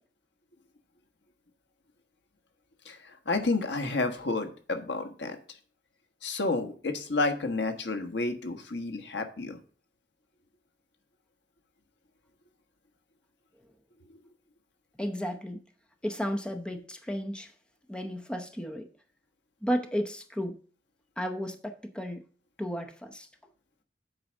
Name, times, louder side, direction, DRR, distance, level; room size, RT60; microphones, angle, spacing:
voice 1, 2.8-5.4 6.2-9.6, left 3 dB, 75° left, 1.3 m, -30 dB
voice 2, 15.0-15.6 16.0-17.5 17.9-18.9 19.6-20.6 21.2-22.2 22.6-23.3, equal, 5° left, 0.7 m, -33 dB
7.9 x 4.8 x 6.3 m
head